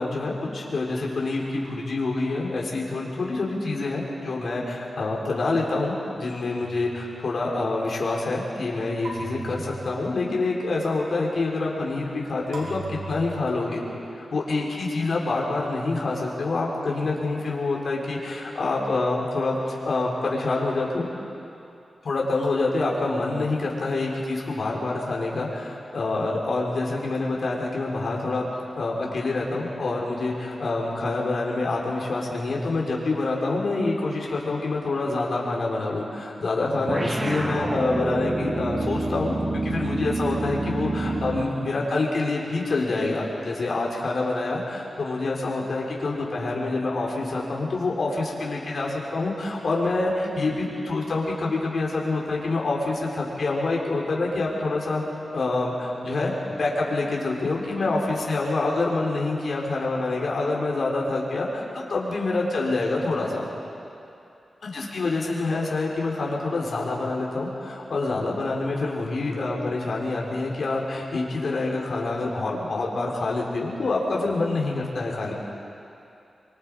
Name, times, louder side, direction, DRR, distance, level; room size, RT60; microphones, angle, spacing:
voice 1, 0.0-13.8 14.1-21.1 22.0-28.5 28.8-39.4 39.6-55.0 55.3-63.4 64.6-75.3, left 3 dB, 65° left, -3 dB, 4.3 m, -26 dB
sound 1, 6.6-7.3 9.0-10.4 12.5-13.6, right 3 dB, 85° right, 5.1 m, -38 dB
sound 2, 36.9-41.6, right 2 dB, 20° right, 1.5 m, -28 dB
25.0 x 25.0 x 4.9 m, 2.7 s
wide cardioid pair, 95°, 0 cm